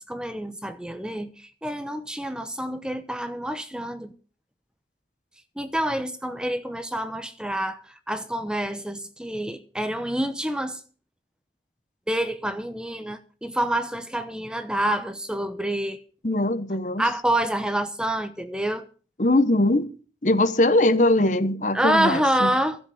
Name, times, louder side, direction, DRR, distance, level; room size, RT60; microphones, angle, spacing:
voice 1, 0.1-4.1 5.6-10.8 12.1-16.0 17.0-18.9 21.7-22.8, right 1 dB, 5° right, 0.9 m, -27 dB
voice 2, 16.2-17.0 19.2-19.9 20.2-22.5, left 1 dB, 45° left, 1.1 m, -21 dB
13.5 x 7.7 x 8.0 m
head